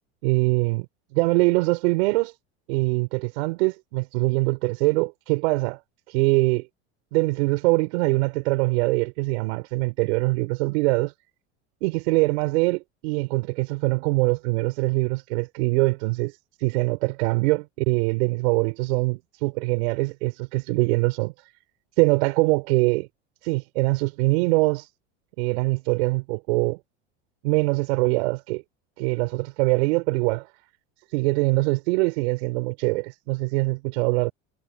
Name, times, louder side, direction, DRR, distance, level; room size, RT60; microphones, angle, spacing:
voice 1, 0.2-0.9 1.1-2.3 2.7-5.8 6.1-6.7 7.1-11.1 11.8-16.3 16.6-21.3 22.0-23.1 23.4-24.9 25.4-26.8 27.4-28.6 29.0-30.5 31.1-34.3, right 25 dB, 75° right, 5.2 m, -23 dB
hypercardioid pair, 90°, 33 cm